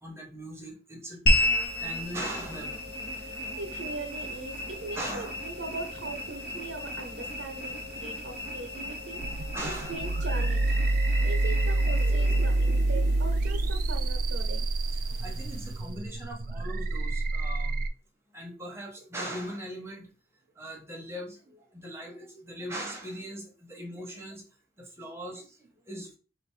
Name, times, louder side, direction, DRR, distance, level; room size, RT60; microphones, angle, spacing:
voice 1, 0.0-1.2 1.8-2.8 4.9-5.4 9.5-10.0 15.1-17.9 18.3-20.1 20.6-24.4 24.8-26.2, right 1 dB, 15° right, 0 dB, 1.0 m, -40 dB
sound 1, 1.3-15.9, left 1 dB, 60° left, 1.7 m, -34 dB
voice 2, 3.2-10.8 11.2-14.7 14.9-15.0, right 3 dB, 80° right, 4 dB, 0.8 m, -40 dB
sound 2, 9.2-17.9, right 2 dB, 45° right, 0.3 m, -27 dB
4.4 x 2.5 x 4.6 m, 0.38 s
head